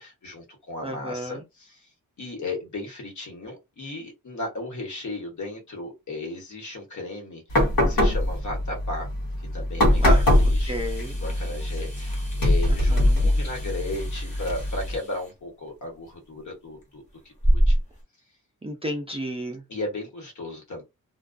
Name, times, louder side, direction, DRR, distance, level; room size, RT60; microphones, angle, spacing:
voice 1, 0.0-1.9 2.2-9.1 9.5-10.7 11.2-17.0 17.5-17.8 19.7-20.8, left 2 dB, 60° left, 1.1 m, -35 dB
voice 2, 0.8-1.4 10.0-10.2 10.7-11.2 12.9-13.3 18.6-19.6, right 1 dB, 20° right, 0.3 m, -32 dB
sound 1, 7.5-15.0, left 1 dB, 85° left, 1.0 m, -23 dB
sound 2, 9.8-18.0, equal, 20° left, 0.7 m, -30 dB
2.3 x 2.2 x 2.5 m
wide cardioid pair, 175°, 34 cm